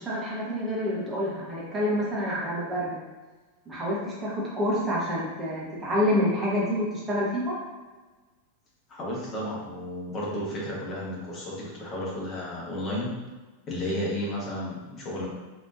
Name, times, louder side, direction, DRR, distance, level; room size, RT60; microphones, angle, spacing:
voice 1, 0.0-3.0 3.7-7.6, equal, 15° right, -6 dB, 1.2 m, -28 dB
voice 2, 8.9-13.1 13.7-15.3, left 1 dB, 25° left, -5 dB, 1.3 m, -32 dB
4.1 x 3.0 x 2.5 m, 1.3 s
figure-of-eight pair, 90°, 0 cm